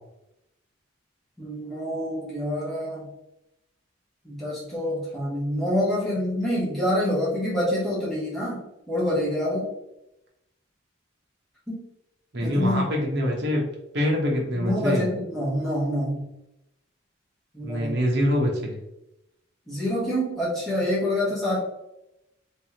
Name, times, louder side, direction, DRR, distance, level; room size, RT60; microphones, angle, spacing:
voice 1, 1.4-3.1 4.2-8.6 8.9-9.7 11.7-11.8 12.4-12.9 14.6-16.3 17.5-17.9 19.7-21.6, equal, ahead, -10 dB, 1.1 m, -26 dB
voice 2, 12.3-13.6 13.9-15.1 17.6-18.8, equal, 60° right, -1 dB, 1.0 m, -24 dB
3.4 x 3.1 x 2.9 m, 0.86 s
head